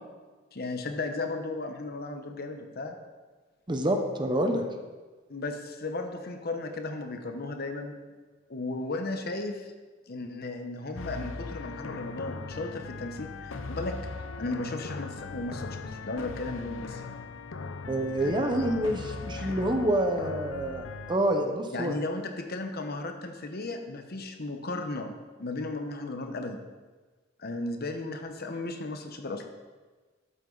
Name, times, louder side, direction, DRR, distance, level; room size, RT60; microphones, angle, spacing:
voice 1, 0.5-3.0 5.3-7.9 8.5-9.7 10.1-13.9 14.4-17.0 18.2-18.4 19.4-19.5 21.7-25.1 25.4-26.6 27.4-29.4, left 2 dB, 50° left, 5 dB, 1.0 m, -35 dB
voice 2, 3.7-4.6 17.9-22.0, right 1 dB, 25° right, 5 dB, 0.9 m, -27 dB
sound 1, 11.0-21.2, left 4 dB, 75° left, 0.7 m, -39 dB
12.5 x 8.2 x 4.0 m, 1.3 s
head